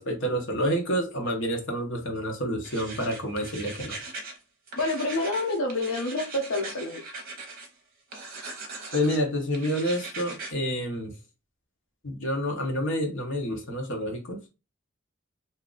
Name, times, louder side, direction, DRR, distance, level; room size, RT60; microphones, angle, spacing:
voice 1, 0.0-3.9 8.9-11.1 12.0-14.4, equal, 65° left, 1.0 m, -28 dB
sound 1, 2.6-4.4 4.7-7.7 8.1-9.2 9.5-10.5, right 3 dB, 45° right, 0.8 m, -40 dB
voice 2, 4.8-7.0, left 2 dB, 90° left, 0.7 m, -28 dB
2.7 x 2.4 x 3.7 m
head